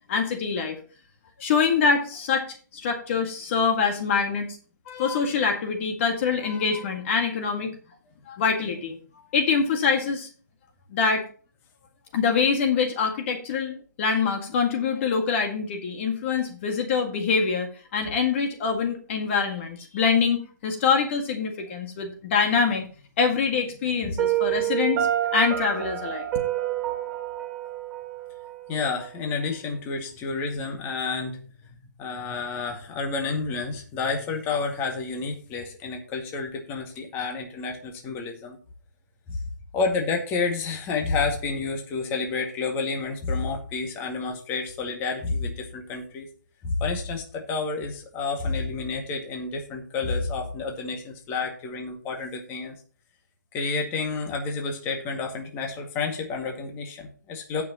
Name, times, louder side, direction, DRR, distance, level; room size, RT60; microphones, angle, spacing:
voice 1, 0.1-0.8 1.4-2.5 2.7-4.6 4.9-7.7 8.3-9.0 9.3-10.3 10.9-11.2 12.1-22.9 23.2-25.1 25.3-26.3, left 5 dB, 40° left, 4 dB, 1.9 m, -24 dB
Piano, 24.2-29.1, right 12 dB, 20° right, 2.4 m, -28 dB
voice 2, 28.7-38.6 39.3-39.4 39.7-46.3 46.6-52.8 53.5-57.6, left 4 dB, 20° left, 2 dB, 2.0 m, -30 dB
17.0 x 6.2 x 2.9 m, 0.40 s
hypercardioid pair, 140°, 10 cm